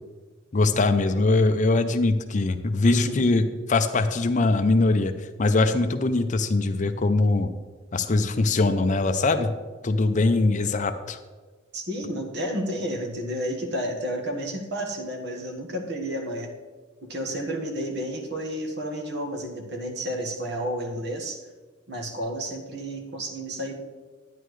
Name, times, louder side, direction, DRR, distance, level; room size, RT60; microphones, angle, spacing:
voice 1, 0.5-5.1 5.4-7.5 7.9-9.5 9.8-11.2, left 3 dB, 40° left, 9 dB, 0.5 m, -22 dB
voice 2, 2.9-3.3 11.7-16.5 17.0-21.4 21.9-23.7, equal, 55° right, 2 dB, 1.5 m, -31 dB
11.0 x 10.0 x 3.2 m, 1.4 s
head